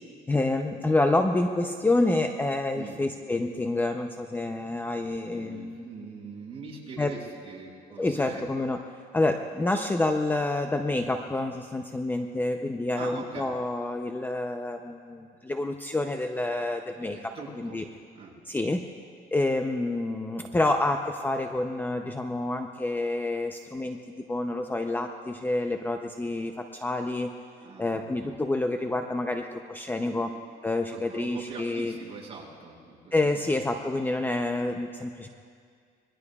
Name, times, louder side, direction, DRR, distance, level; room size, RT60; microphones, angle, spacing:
voice 1, 0.3-5.8 7.0-7.2 8.0-8.8 9.1-17.3 17.7-17.8 18.5-18.8 19.3-27.3 27.8-30.3 30.6-31.9 33.1-35.3, left 2 dB, 10° left, 5 dB, 0.6 m, -28 dB
voice 2, 5.3-8.5 12.9-13.5 17.0-17.8 18.1-18.4 27.6-28.4 30.0-30.3 30.9-33.5, right 4 dB, 35° right, -3 dB, 5.5 m, -43 dB
25.5 x 21.5 x 2.4 m, 2.2 s
cardioid pair, 110°, 17 cm